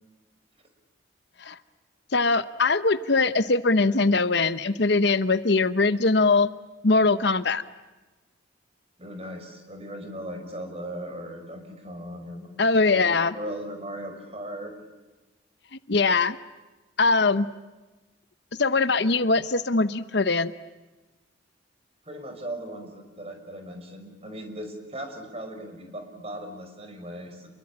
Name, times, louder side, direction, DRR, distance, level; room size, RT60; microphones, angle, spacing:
voice 1, 2.1-6.5 6.8-7.6 12.6-13.3 15.9-16.4 17.0-17.5 18.6-20.5, left 3 dB, 60° left, 13 dB, 0.9 m, -21 dB
voice 2, 9.0-12.5 12.9-14.7 22.1-27.5, right 1 dB, 30° right, 5 dB, 5.8 m, -38 dB
29.5 x 23.0 x 8.7 m, 1.2 s
head